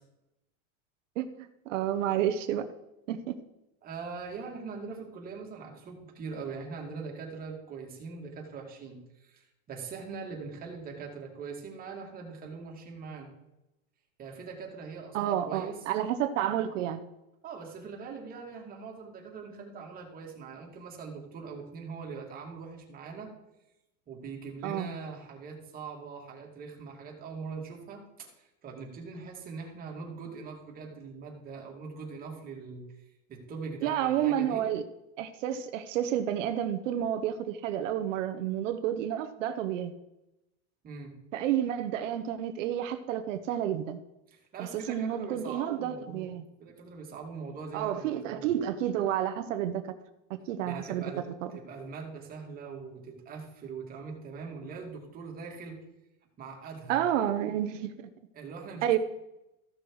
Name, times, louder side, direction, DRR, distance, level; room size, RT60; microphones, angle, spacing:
voice 1, 1.2-2.7 3.1-3.4 15.1-17.0 24.6-24.9 33.8-34.8 35.2-39.9 41.3-44.0 44.6-46.4 47.7-49.9 50.5-51.0 51.4-51.5 56.9-58.1 58.8-59.0, right 11 dB, 75° right, 8 dB, 0.9 m, -30 dB
voice 2, 3.8-13.3 14.2-15.8 17.4-23.3 24.1-32.8 33.3-34.7 40.8-41.1 44.3-46.3 46.6-48.5 50.6-51.2 51.5-55.8 56.4-57.0 58.3-59.0, right 5 dB, 25° right, 0 dB, 2.3 m, -42 dB
14.5 x 6.2 x 4.8 m, 0.93 s
supercardioid pair, 155°, 38 cm